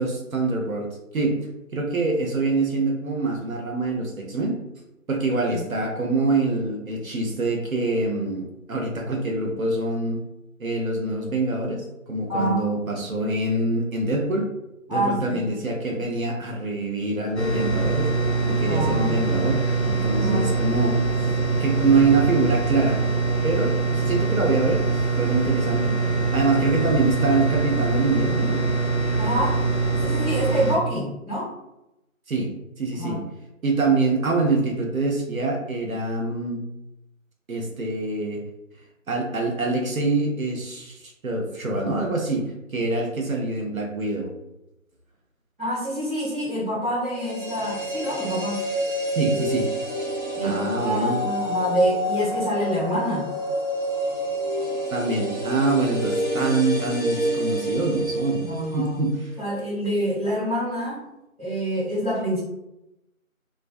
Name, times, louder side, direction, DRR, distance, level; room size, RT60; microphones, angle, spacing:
voice 1, 0.0-1.4 1.7-4.6 5.1-10.2 10.6-14.5 14.9-18.1 18.5-21.3 21.6-23.0 23.4-28.6 32.3-32.5 32.8-33.2 33.6-36.6 37.5-38.4 39.1-44.3 49.2-49.7 50.4-51.2 54.9-58.4 58.7-59.3, right 3 dB, 75° right, 0 dB, 0.7 m, -25 dB
voice 2, 12.3-12.6 14.9-15.5 18.7-19.2 20.1-20.5 29.1-29.6 30.0-31.5 33.0-33.2 45.6-48.6 50.3-53.3 58.4-59.0 59.4-61.0 61.4-62.4, right 1 dB, 40° right, -10 dB, 1.1 m, -26 dB
sound 1, 17.4-30.8, right 3 dB, 50° left, 0.6 m, -23 dB
sound 2, 47.1-59.2 59.4-59.5, equal, ahead, 0.7 m, -28 dB
2.4 x 2.2 x 2.3 m, 0.90 s
figure-of-eight pair, 170°, 41 cm